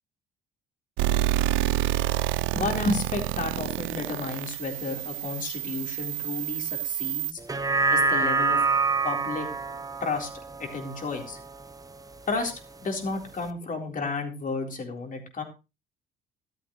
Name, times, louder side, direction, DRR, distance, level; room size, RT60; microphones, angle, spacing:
sound 1, 1.0-7.3, right 13 dB, 70° right, 0.6 m, -28 dB
voice 1, 2.5-7.4 7.9-8.6 9.0-9.5 10.0-10.3 10.6-11.4 12.3-12.5 12.8-15.4, left 3 dB, 40° left, 3 dB, 4.0 m, -31 dB
sound 2, 7.4-12.0 12.4-12.5, right 4 dB, 15° right, 1.1 m, -26 dB
14.0 x 13.0 x 3.2 m, 0.29 s
hypercardioid pair, 60°, 21 cm